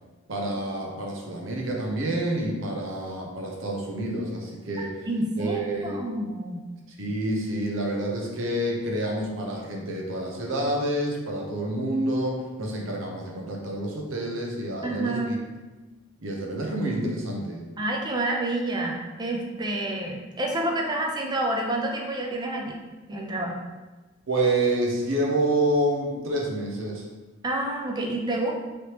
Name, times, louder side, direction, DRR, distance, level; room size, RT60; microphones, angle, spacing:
voice 1, 0.3-5.0 5.4-6.0 7.0-15.4 16.2-17.7 24.3-27.1, right 1 dB, 75° right, -1 dB, 0.7 m, -28 dB
voice 2, 5.1-6.6 14.8-15.4 17.8-22.8 23.1-23.6 27.4-28.5, right 1 dB, 20° right, 1 dB, 0.5 m, -28 dB
3.3 x 3.0 x 3.0 m, 1.2 s
head